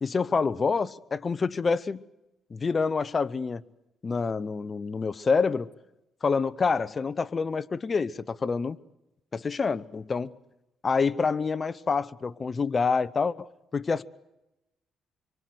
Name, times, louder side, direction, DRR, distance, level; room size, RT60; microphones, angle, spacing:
voice 1, 0.0-2.0 2.5-3.6 4.0-5.7 6.2-8.8 9.3-10.3 10.8-14.0, left 5 dB, 35° left, 1.0 m, -27 dB
27.0 x 23.5 x 8.0 m
cardioid pair, 90°, 0 cm